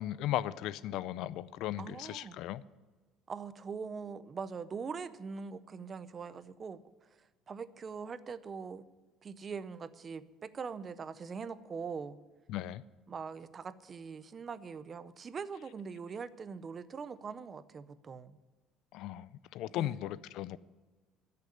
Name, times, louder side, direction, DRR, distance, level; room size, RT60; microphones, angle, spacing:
voice 1, 0.0-2.6 12.5-12.8 18.9-20.6, left 13 dB, 60° left, 0.4 m, -37 dB
voice 2, 1.8-2.4 3.3-8.8 9.2-12.2 13.1-18.4 19.8-20.0, right 5 dB, 25° right, 0.5 m, -42 dB
13.5 x 6.7 x 9.7 m
cardioid pair, 155°, 0 cm